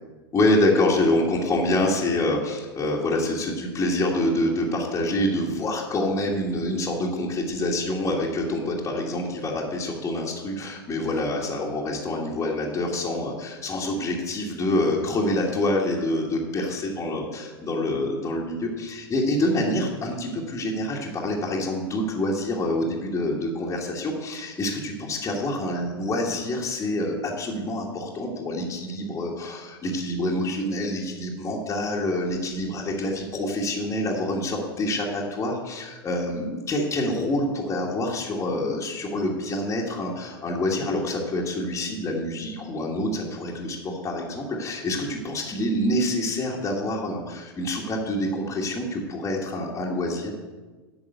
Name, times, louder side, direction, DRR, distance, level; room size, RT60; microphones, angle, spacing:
voice 1, 0.3-50.3, left 1 dB, 20° left, -3 dB, 1.6 m, -26 dB
8.9 x 5.9 x 8.0 m, 1.3 s
figure-of-eight pair, 85°, 13 cm